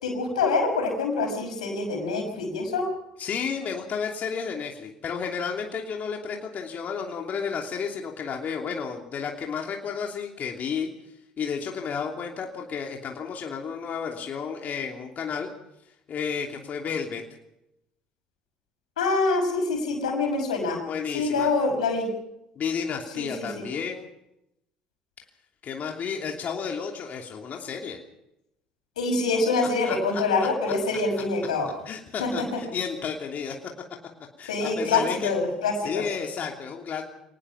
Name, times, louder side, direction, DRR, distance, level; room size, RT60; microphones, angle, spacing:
voice 1, 0.0-2.9 19.0-20.8 21.1-22.1 23.2-23.6 29.0-31.7 32.2-32.6 34.5-36.0, left 3 dB, 90° left, 4 dB, 5.8 m, -25 dB
voice 2, 3.2-10.9 11.4-15.5 16.1-17.2 20.9-21.5 22.6-24.1 25.6-28.0 29.8-30.2 31.9-33.6 34.4-35.4 35.8-37.0, left 6 dB, 50° left, 1 dB, 3.0 m, -32 dB
25.5 x 19.0 x 5.9 m, 0.84 s
hypercardioid pair, 65°, 4 cm